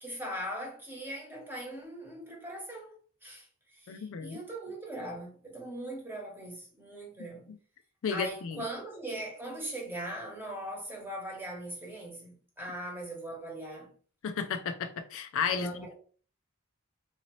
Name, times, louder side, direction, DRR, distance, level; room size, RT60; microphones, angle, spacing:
voice 1, 0.0-7.5 8.1-13.9 15.5-15.9, right 1 dB, 10° right, 1.1 m, -40 dB
voice 2, 3.9-4.3 8.0-8.6 14.2-15.7, left 6 dB, 60° left, 0.4 m, -33 dB
3.9 x 2.7 x 3.0 m
head